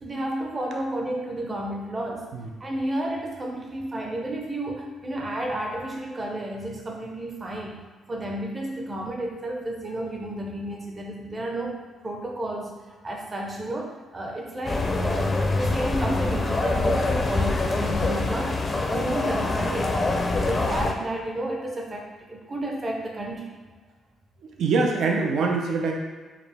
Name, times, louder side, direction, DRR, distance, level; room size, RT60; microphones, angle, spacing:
voice 1, 0.0-2.3 2.6-7.8 8.1-12.8 13.0-18.6 18.9-23.6, right 1 dB, 30° right, 0 dB, 0.6 m, -32 dB
sound 1, 14.7-20.9, left 2 dB, 30° left, 0.5 m, -25 dB
voice 2, 24.4-25.9, right 4 dB, 70° right, 2 dB, 0.5 m, -24 dB
4.7 x 2.0 x 3.3 m, 1.4 s
cardioid pair, 90°, 0 cm